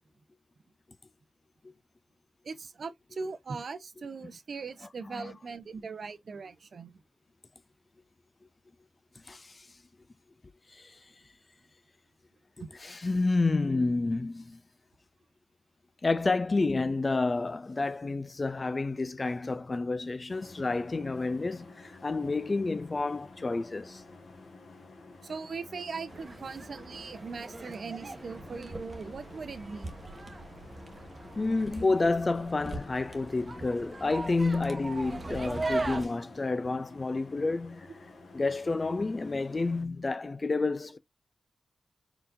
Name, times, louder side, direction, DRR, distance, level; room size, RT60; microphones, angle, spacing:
voice 1, 2.4-7.0 12.6-12.7 20.6-20.7 23.8-23.9 25.2-29.9, right 4 dB, 55° right, 0.6 m, -40 dB
voice 2, 9.3-9.7 10.7-11.0 12.8-14.6 16.0-24.0 31.4-37.9 38.3-41.0, left 3 dB, 30° left, 0.4 m, -29 dB
sound 1, 20.3-39.9, left 3 dB, 70° left, 1.6 m, -51 dB
sound 2, 26.1-36.1, right 2 dB, 30° right, 1.0 m, -39 dB
4.5 x 3.9 x 2.5 m
wide cardioid pair, 135°, 0 cm